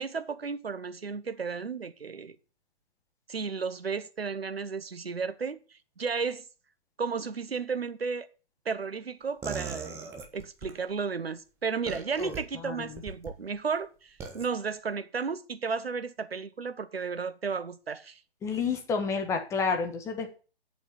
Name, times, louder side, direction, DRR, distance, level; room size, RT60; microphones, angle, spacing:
voice 1, 0.0-2.4 3.3-6.4 7.0-8.3 8.6-18.2, right 5 dB, 65° right, 1.2 m, -33 dB
sound 1, 9.4-10.8 11.9-12.4 13.0-13.3 14.2-14.5, right 5 dB, 10° right, 1.0 m, -38 dB
voice 2, 12.2-13.0 18.4-20.4, left 5 dB, 10° left, 1.4 m, -30 dB
8.4 x 7.0 x 8.5 m
figure-of-eight pair, 135°, 32 cm